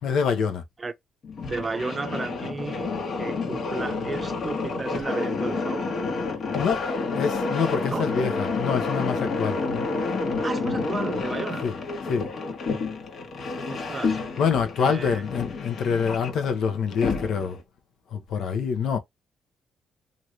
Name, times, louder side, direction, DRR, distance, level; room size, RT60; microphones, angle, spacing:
voice 1, 0.0-0.6 6.5-6.9 7.2-9.6 11.6-11.7 12.1-12.3 14.4-17.6 18.1-19.0, left 6 dB, 75° left, 0.8 m, -26 dB
sound 1, 1.2-17.6, left 4 dB, 55° left, 1.2 m, -29 dB
voice 2, 1.5-2.9 3.2-6.0 7.9-8.1 10.4-11.7 13.7-14.2 14.8-15.2, right 3 dB, 30° right, 0.6 m, -33 dB
2.9 x 2.6 x 3.0 m
cardioid pair, 90°, 0 cm